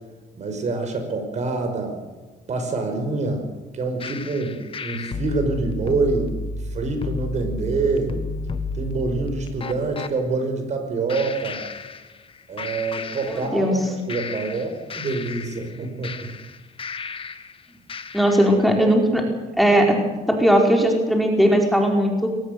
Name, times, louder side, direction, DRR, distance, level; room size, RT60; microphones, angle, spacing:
voice 1, 0.3-2.0 2.5-3.4 3.7-6.3 6.7-8.1 8.7-11.6 12.5-16.3, right 3 dB, 45° right, 6 dB, 5.6 m, -26 dB
sound 1, 4.0-10.1 11.1-12.3 12.6-13.8 14.1-17.5 17.9-18.5, left 3 dB, 30° left, 1.6 m, -32 dB
voice 2, 13.5-13.8 18.1-19.2 19.6-22.3, equal, ahead, 1 dB, 4.7 m, -18 dB
22.5 x 18.5 x 6.9 m, 1.3 s
cardioid pair, 110°, 17 cm